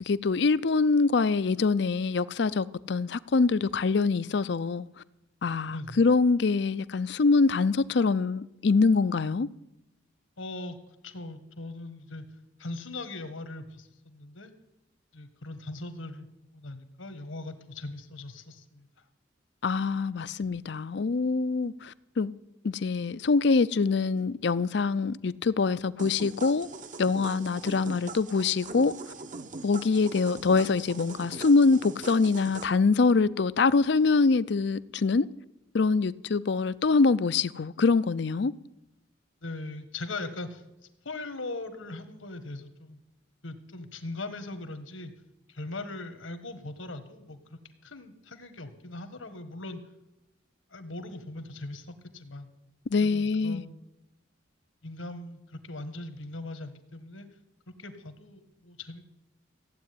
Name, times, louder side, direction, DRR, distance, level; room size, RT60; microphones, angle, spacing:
voice 1, 0.0-4.9 5.4-9.5 19.6-22.3 22.6-26.7 27.0-28.9 29.6-35.3 35.7-38.5 52.9-53.6, left 4 dB, 60° left, 0.5 m, -24 dB
voice 2, 10.4-10.8 11.0-12.3 12.6-14.5 15.1-16.3 16.5-18.9 39.4-40.6 41.0-43.0 43.4-45.1 45.5-49.8 50.7-52.5 53.0-53.8 54.8-57.3 57.8-59.1, left 2 dB, 80° left, 1.6 m, -40 dB
sound 1, 26.0-32.6, right 3 dB, 40° right, 0.8 m, -42 dB
15.0 x 8.4 x 9.6 m
head